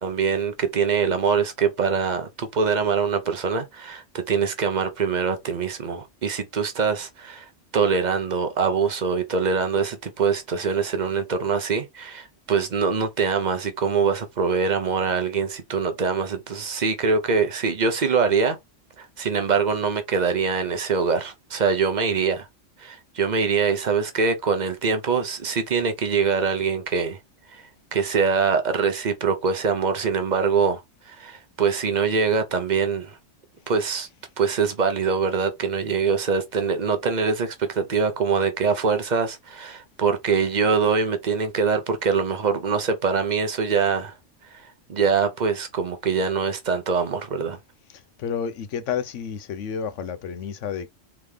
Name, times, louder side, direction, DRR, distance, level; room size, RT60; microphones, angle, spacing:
voice 1, 0.0-18.6 19.0-22.5 22.8-27.2 27.5-27.6 27.9-33.2 33.7-34.1 34.4-44.1 44.9-47.6, right 5 dB, 45° right, 0.8 m, -23 dB
voice 2, 47.9-50.9, left 7 dB, 90° left, 1.0 m, -30 dB
3.7 x 3.5 x 3.3 m
omnidirectional pair, 1.2 m